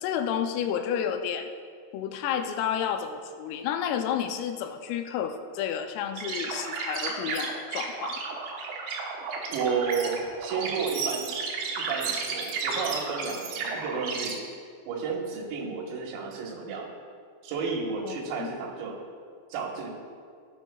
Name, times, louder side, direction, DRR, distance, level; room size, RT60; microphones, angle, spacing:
voice 1, 0.0-1.5 1.9-8.2 18.0-18.5, left 8 dB, 85° left, 6 dB, 3.3 m, -31 dB
sound 1, 6.2-14.3, right 5 dB, 70° right, 3.0 m, -33 dB
voice 2, 9.5-11.3 11.8-14.4 14.9-16.9 17.4-19.0 19.5-19.9, right 5 dB, 85° right, 0 dB, 4.1 m, -32 dB
16.0 x 9.6 x 2.3 m, 2.1 s
omnidirectional pair, 5.9 m